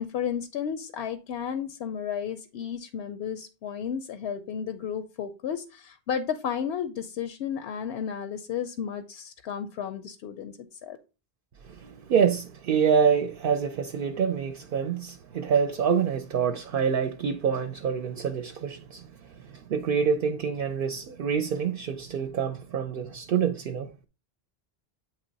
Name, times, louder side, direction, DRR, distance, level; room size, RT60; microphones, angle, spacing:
voice 1, 0.0-11.0, left 8 dB, 85° left, 0.8 m, -33 dB
voice 2, 11.6-23.9, right 7 dB, 65° right, 0.7 m, -26 dB
9.1 x 3.0 x 3.9 m
omnidirectional pair, 1.0 m